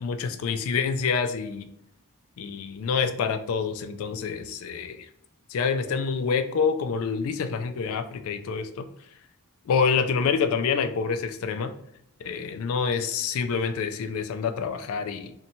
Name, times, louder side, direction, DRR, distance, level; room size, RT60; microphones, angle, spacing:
voice 1, 0.0-1.7 2.4-5.1 5.5-8.9 9.7-11.7 12.2-15.3, left 5 dB, 65° left, 7 dB, 0.3 m, -27 dB
2.7 x 2.2 x 2.7 m, 0.72 s
head